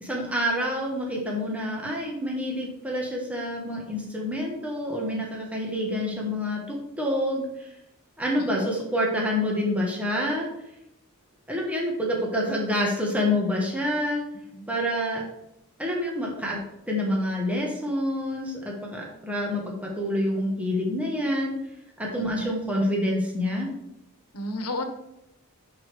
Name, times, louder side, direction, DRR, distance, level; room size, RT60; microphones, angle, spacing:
voice 1, 0.0-7.7 8.2-10.5 11.5-14.2 14.7-15.2 15.8-16.6 16.9-21.5 22.0-23.7, left 1 dB, 5° right, -2 dB, 1.2 m, -27 dB
voice 2, 24.3-24.8, left 1 dB, 80° left, 6 dB, 1.2 m, -32 dB
10.5 x 4.8 x 3.3 m, 0.83 s
head